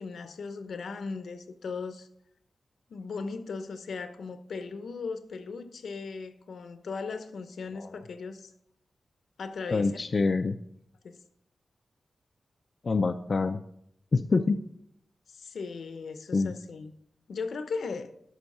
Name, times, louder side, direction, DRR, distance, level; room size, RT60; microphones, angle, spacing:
voice 1, 0.0-2.1 2.9-8.5 9.4-9.9 11.0-11.2 15.3-16.9 17.3-18.1, left 4 dB, 75° left, 10 dB, 0.8 m, -37 dB
voice 2, 9.7-10.6 12.8-13.6 14.1-14.6 16.3-16.5, left 3 dB, 40° left, 7 dB, 0.4 m, -25 dB
11.5 x 6.2 x 5.4 m, 0.74 s
wide cardioid pair, 175°, 0 cm